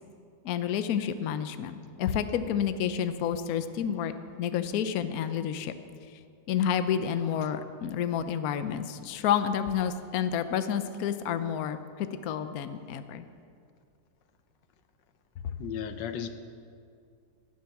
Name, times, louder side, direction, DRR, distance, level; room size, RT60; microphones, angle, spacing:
voice 1, 0.4-5.7 6.5-13.3, left 8 dB, 65° left, 10 dB, 1.1 m, -30 dB
voice 2, 15.6-16.3, left 9 dB, 85° left, 9 dB, 1.5 m, -34 dB
17.0 x 10.5 x 6.0 m, 2.3 s
omnidirectional pair, 1.9 m